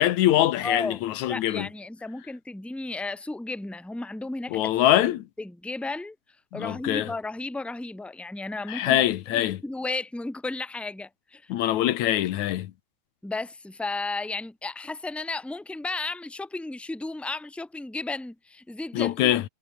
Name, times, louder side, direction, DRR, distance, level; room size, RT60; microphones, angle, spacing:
voice 1, 0.0-1.7 4.5-5.2 6.6-7.1 8.7-9.6 11.5-12.7 18.9-19.4, left 13 dB, 65° left, 2.0 m, -23 dB
voice 2, 0.6-4.6 5.4-6.2 6.5-11.5 13.2-19.4, left 3 dB, ahead, 2.2 m, -34 dB
omnidirectional pair, 4.3 m